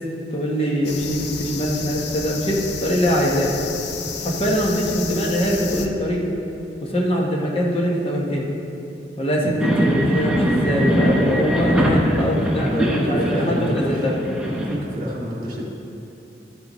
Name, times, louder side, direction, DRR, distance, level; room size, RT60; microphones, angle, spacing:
voice 1, 0.3-3.5 4.1-6.2 6.8-8.5 9.2-14.2, equal, 30° left, -2 dB, 1.1 m, -22 dB
sound 1, 0.8-5.9, left 5 dB, 65° left, 0.8 m, -31 dB
sound 2, 9.6-14.8, equal, 5° right, 1.0 m, -21 dB
voice 2, 12.6-14.1 14.4-15.7, equal, 50° right, -3 dB, 1.9 m, -28 dB
13.0 x 9.2 x 3.1 m, 2.8 s
head